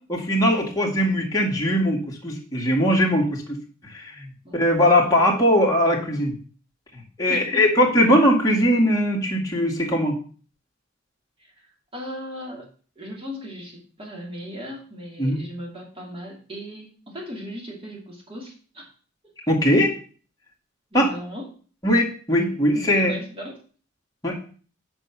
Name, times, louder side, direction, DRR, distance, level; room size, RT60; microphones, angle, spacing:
voice 1, 0.1-3.6 3.9-6.3 7.2-10.2 15.2-15.4 19.5-19.9 20.9-21.1 21.8-23.2 24.2-24.4, equal, 20° left, -3 dB, 2.1 m, -20 dB
voice 2, 4.4-4.9 7.3-7.7 11.9-12.6 13.0-18.9 19.2-19.3 20.9-21.5 22.5-23.6, equal, 30° right, -1 dB, 2.7 m, -37 dB
7.7 x 5.6 x 6.0 m, 0.41 s
head